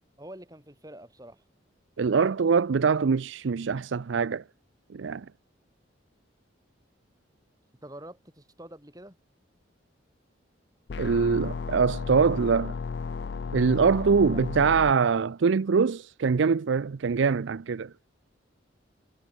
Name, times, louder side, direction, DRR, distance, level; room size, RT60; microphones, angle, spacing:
voice 1, 0.2-1.4 7.8-9.2 14.3-14.4, right 1 dB, 20° right, 7.9 m, -46 dB
voice 2, 2.0-4.4 4.9-5.3 11.0-12.8 13.5-17.9, right 5 dB, 70° right, 0.5 m, -23 dB
sound 1, 10.9-14.9, left 5 dB, 55° left, 0.4 m, -34 dB
head